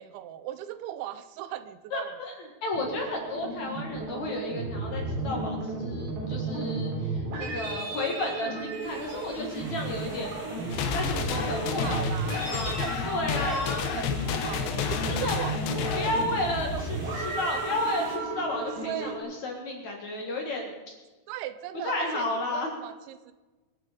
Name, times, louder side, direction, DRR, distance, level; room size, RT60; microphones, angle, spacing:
voice 1, 0.0-2.1 11.8-16.9 18.8-19.2 21.3-23.3, right 12 dB, 90° right, 12 dB, 3.1 m, -38 dB
voice 2, 1.9-10.3 10.9-13.8 15.1-15.3 15.9-20.8 21.8-22.7, left 2 dB, 50° left, 1 dB, 2.5 m, -32 dB
sound 1, 2.7-19.2, right 3 dB, 70° right, 5.7 m, -34 dB
sound 2, 8.8-18.2, right 1 dB, 25° right, 2.5 m, -45 dB
sound 3, 10.7-16.3, left 8 dB, 70° left, 2.6 m, -31 dB
24.5 x 8.5 x 5.2 m, 1.2 s
omnidirectional pair, 5.3 m